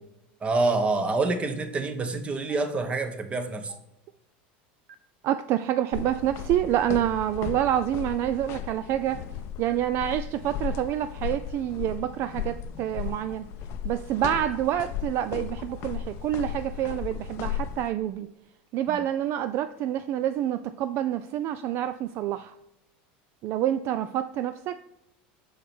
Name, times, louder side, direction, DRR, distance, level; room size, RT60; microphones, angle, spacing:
voice 1, 0.4-3.7 18.9-19.0, right 3 dB, 20° right, 8 dB, 1.0 m, -27 dB
Stream, 2.5-2.6 3.7-3.8 4.9-5.0 6.1-6.2 7.3-7.4 8.5-8.6 9.7-9.8 10.9-11.0 12.1-12.2 13.3-13.4 14.5-14.6 15.7-15.8 16.9-17.0, right 8 dB, 90° right, 0.7 m, -49 dB
voice 2, 5.2-9.2 9.6-13.4 13.8-18.3 18.7-22.5 23.4-24.8, right 11 dB, 50° right, 12 dB, 0.3 m, -27 dB
sound 1, 5.9-17.9, left 8 dB, 55° left, 0.5 m, -36 dB
6.4 x 4.9 x 4.3 m, 0.86 s
supercardioid pair, 115°, 5 cm